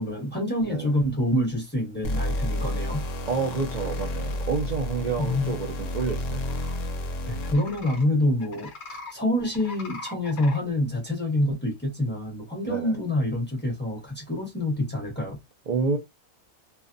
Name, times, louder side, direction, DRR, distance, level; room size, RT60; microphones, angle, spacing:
voice 1, 0.0-3.0 5.2-5.6 7.2-15.4, left 1 dB, 10° left, 0.9 m, -27 dB
sound 1, 2.0-7.8, left 1 dB, 70° left, 1.0 m, -30 dB
voice 2, 3.3-6.5 12.6-13.0 15.7-16.0, right 5 dB, 75° right, 0.4 m, -29 dB
sound 2, 6.3-6.8 7.4-8.0 8.4-9.1 9.4-10.6, left 3 dB, 45° left, 0.7 m, -41 dB
2.5 x 2.2 x 2.5 m
omnidirectional pair, 1.4 m